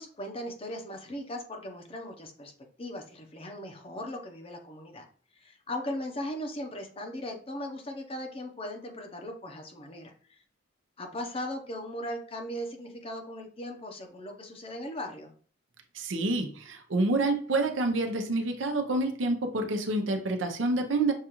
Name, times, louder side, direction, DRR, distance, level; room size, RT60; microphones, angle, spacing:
voice 1, 0.0-2.5 2.8-5.1 5.3-10.4 11.0-15.3, left 1 dB, 30° left, 3 dB, 0.7 m, -38 dB
voice 2, 15.9-21.1, right 2 dB, 85° right, 5 dB, 0.7 m, -28 dB
6.5 x 2.5 x 3.0 m, 0.43 s
head